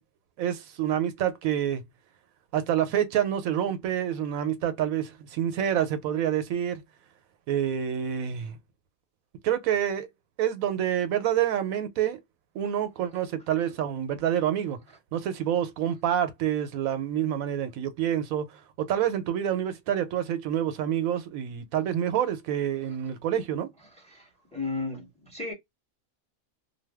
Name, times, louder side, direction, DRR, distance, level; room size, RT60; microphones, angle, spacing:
voice 1, 0.4-1.8 2.5-6.8 7.5-8.6 9.4-10.1 10.4-12.2 12.5-14.8 15.1-18.4 18.8-23.7, right 10 dB, 80° right, 1.0 m, -27 dB
voice 2, 24.1-25.5, left 3 dB, 5° left, 0.9 m, -34 dB
2.6 x 2.2 x 3.3 m
omnidirectional pair, 1.5 m